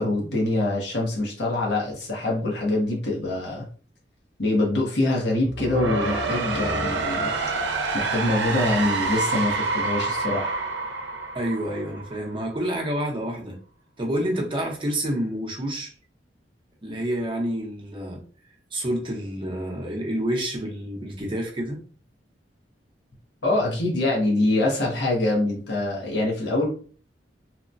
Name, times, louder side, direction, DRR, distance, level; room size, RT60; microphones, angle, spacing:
voice 1, 0.0-3.7 4.4-7.3 7.9-10.6 23.4-26.7, left 2 dB, 70° left, 0.9 m, -24 dB
sound 1, 5.4-12.4, right 3 dB, 80° right, 0.6 m, -27 dB
voice 2, 11.3-13.6 14.0-15.9 16.8-18.2 18.7-21.8, right 1 dB, 30° right, 0.7 m, -28 dB
2.9 x 2.1 x 2.5 m
head